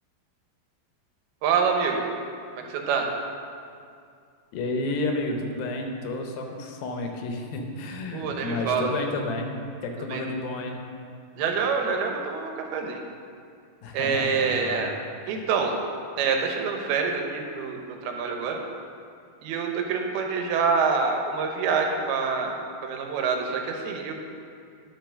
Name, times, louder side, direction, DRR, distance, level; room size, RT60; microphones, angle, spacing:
voice 1, 1.4-2.1 2.5-3.1 8.1-8.9 10.0-10.2 11.4-13.0 13.9-14.9 15.3-15.7 16.2-18.6 19.4-24.1, right 5 dB, 90° right, 2 dB, 2.9 m, -26 dB
voice 2, 4.5-10.8 13.8-14.9, left 2 dB, 80° left, 3 dB, 2.7 m, -31 dB
10.5 x 5.7 x 6.3 m, 2.3 s
omnidirectional pair, 4.3 m